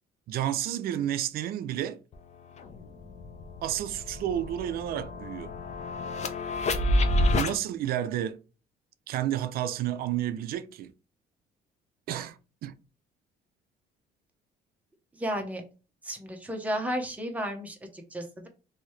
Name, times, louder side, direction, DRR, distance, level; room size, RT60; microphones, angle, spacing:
voice 1, 0.3-2.0 3.6-5.5 7.3-8.4 9.1-10.9 12.1-12.8, right 11 dB, 65° right, 0.4 m, -31 dB
sound 1, 2.1-2.2 2.6-7.5, left 1 dB, 40° left, 0.6 m, -29 dB
voice 2, 15.1-15.6 16.0-18.5, equal, 10° right, 0.8 m, -33 dB
3.0 x 2.7 x 3.1 m
cardioid pair, 110°, 17 cm